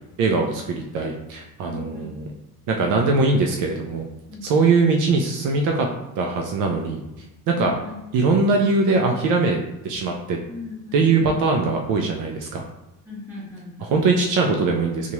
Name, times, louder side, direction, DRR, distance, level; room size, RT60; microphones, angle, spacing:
voice 1, 0.2-2.2 2.7-4.1 4.4-5.9 6.2-7.0 7.6-7.7 8.1-9.6 9.8-10.4 10.9-12.6 13.9-15.1, right 3 dB, 65° right, 2 dB, 0.4 m, -21 dB
voice 2, 1.7-2.1 4.3-4.7 7.5-7.9 10.4-11.4 13.0-14.0, left 3 dB, 5° right, -9 dB, 1.2 m, -38 dB
2.8 x 2.3 x 3.0 m, 0.97 s
cardioid pair, 170°, 33 cm